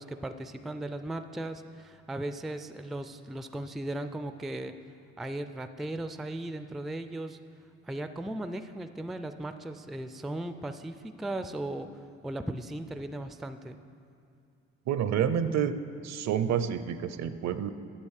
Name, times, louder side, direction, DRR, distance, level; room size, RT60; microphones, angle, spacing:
voice 1, 0.0-4.8 5.2-7.4 7.8-11.9 12.2-13.8, right 1 dB, ahead, 10 dB, 0.3 m, -37 dB
voice 2, 14.9-15.7 16.0-17.7, right 8 dB, 65° right, 12 dB, 0.6 m, -28 dB
8.9 x 7.5 x 6.5 m, 2.4 s
cardioid pair, 90°, 30 cm